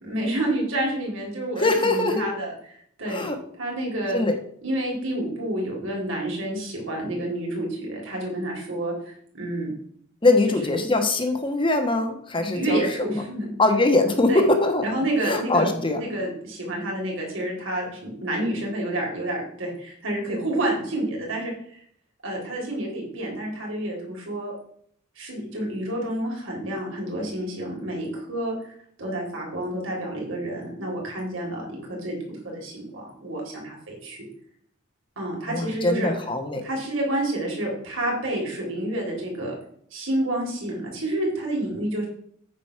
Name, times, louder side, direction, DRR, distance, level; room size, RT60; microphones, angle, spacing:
voice 1, 0.0-2.5 3.0-3.2 3.6-4.2 4.6-9.7 12.5-13.5 14.3-14.4 14.8-15.7 15.9-21.8 22.2-24.5 25.2-28.5 29.0-32.2 32.4-34.2 35.2-36.1 36.6-39.5 39.9-42.1, right 1 dB, 75° right, -2 dB, 3.7 m, -29 dB
voice 2, 1.6-2.3 3.1-3.4 4.1-4.3 10.2-13.2 13.6-14.9 15.2-16.0 35.5-36.6, left 2 dB, 25° left, 6 dB, 1.1 m, -22 dB
8.9 x 5.1 x 5.8 m, 0.65 s
head